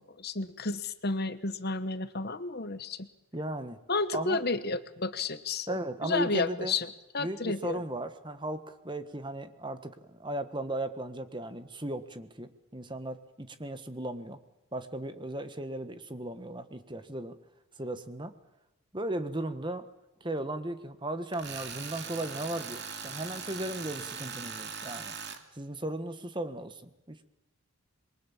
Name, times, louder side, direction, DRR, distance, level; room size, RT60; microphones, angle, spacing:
voice 1, 0.0-3.1 3.9-6.9 7.1-7.8, left 3 dB, 45° left, 12 dB, 1.2 m, -32 dB
voice 2, 3.3-3.8 4.1-4.4 5.7-6.7 7.2-14.4 14.7-17.4 17.8-18.3 18.9-19.8 20.2-25.1 25.5-27.2, right 1 dB, 20° right, 10 dB, 1.4 m, -36 dB
Tools, 21.3-25.4, right 6 dB, 50° right, 2.7 m, -40 dB
27.5 x 23.0 x 7.3 m, 0.95 s
head